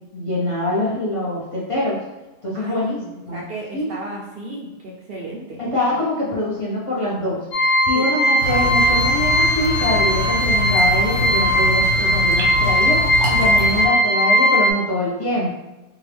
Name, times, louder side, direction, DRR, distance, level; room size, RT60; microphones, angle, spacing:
voice 1, 0.1-2.0 2.4-3.0 3.3-3.4 3.7-3.9 5.6-7.4 7.9-15.5, left 1 dB, 35° left, -7 dB, 0.6 m, -24 dB
voice 2, 2.5-5.6 7.9-8.1 13.7-13.8, right 2 dB, 60° right, -3 dB, 0.6 m, -34 dB
sound 1, 7.5-14.7, equal, 55° left, 0.9 m, -18 dB
sound 2, 8.4-13.9, left 1 dB, 80° right, 1.0 m, -25 dB
3.7 x 2.1 x 3.3 m, 1.1 s
omnidirectional pair, 1.3 m